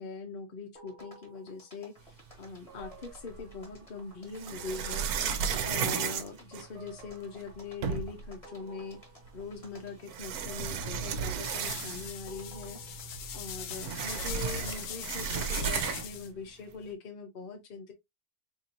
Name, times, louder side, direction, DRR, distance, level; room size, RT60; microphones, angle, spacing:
voice 1, 0.0-5.1 5.6-9.0 9.3-12.8 13.3-17.9, left 4 dB, 55° left, 0.6 m, -42 dB
sound 1, 0.7-16.1, right 1 dB, 25° left, 1.4 m, -54 dB
sound 2, 2.8-3.6 4.3-7.1 7.5-7.6 7.8-8.3 9.4-9.5 10.1-12.3 12.6-12.7 13.0-16.2, right 7 dB, 70° right, 1.1 m, -33 dB
sound 3, 10.9-16.3, left 7 dB, 70° left, 1.0 m, -41 dB
3.9 x 2.9 x 2.7 m
omnidirectional pair, 1.7 m